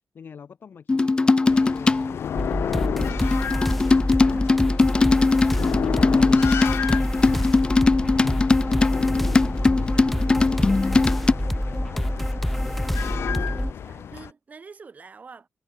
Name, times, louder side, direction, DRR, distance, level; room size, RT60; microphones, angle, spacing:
voice 1, 0.1-2.1 3.1-5.0 5.9-9.8 10.2-12.2, left 7 dB, 50° left, 3.6 m, -46 dB
sound 1, 0.9-2.2 3.0-11.3, left 3 dB, 20° left, 0.5 m, -20 dB
sound 2, 1.4-14.3, left 8 dB, 70° left, 0.8 m, -32 dB
sound 3, 2.3-13.7, equal, 5° left, 1.0 m, -26 dB
voice 2, 13.1-15.5, right 5 dB, 35° right, 5.6 m, -47 dB
wide cardioid pair, 175°, 4 cm